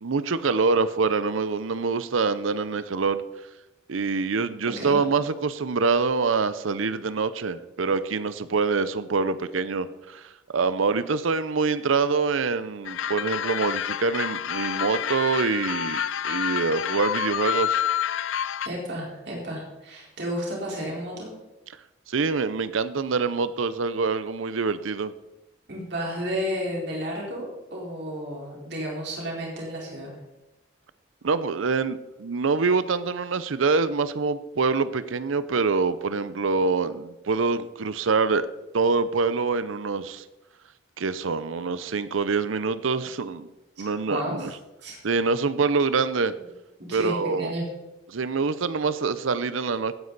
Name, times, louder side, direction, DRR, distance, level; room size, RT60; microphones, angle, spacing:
voice 1, 0.0-3.2 3.9-17.8 22.1-25.1 31.2-38.5 38.7-40.2 41.0-43.5 43.8-44.5 45.0-46.3 46.9-47.5 48.1-50.0, right 4 dB, 85° right, 14 dB, 0.6 m, -25 dB
voice 2, 4.7-5.0 18.6-21.3 25.7-27.4 27.7-30.1 43.8-44.5 44.8-45.0 46.3-46.4 46.8-47.6, equal, 60° right, -3 dB, 4.2 m, -32 dB
sound 1, 12.8-18.7, left 9 dB, 80° left, 0.5 m, -28 dB
16.0 x 9.6 x 4.1 m, 1.0 s
head